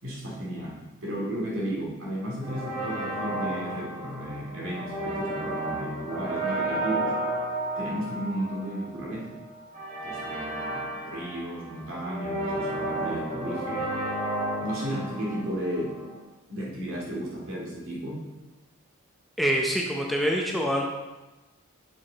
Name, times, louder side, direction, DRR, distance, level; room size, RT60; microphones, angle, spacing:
voice 1, 0.0-7.2 7.8-9.4 10.0-13.9 14.6-16.0 16.5-18.2, right 1 dB, 65° right, -3 dB, 2.3 m, -34 dB
sound 1, 2.4-16.2, right 1 dB, 40° right, 2.4 m, -32 dB
voice 2, 19.4-20.9, equal, ahead, -1 dB, 0.6 m, -25 dB
7.5 x 6.7 x 3.9 m, 1.1 s
head